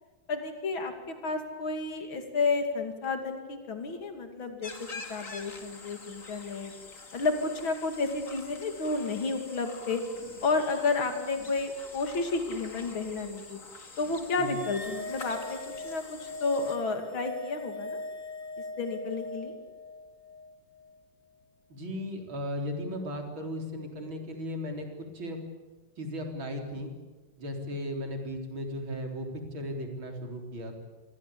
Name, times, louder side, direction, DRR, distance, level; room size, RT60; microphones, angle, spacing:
voice 1, 0.3-6.7 7.1-10.0 10.4-13.6 14.0-15.6 15.8-18.0 18.8-19.5, left 3 dB, 85° left, 6 dB, 3.3 m, -31 dB
sound 1, 4.6-16.8, left 3 dB, 40° left, 3.0 m, -46 dB
sound 2, 14.5-21.1, left 2 dB, 65° left, 2.4 m, -41 dB
voice 2, 21.7-25.4 26.0-26.9 27.4-30.8, left 1 dB, 85° right, 3 dB, 4.7 m, -36 dB
28.0 x 21.5 x 8.6 m, 1.2 s
omnidirectional pair, 2.1 m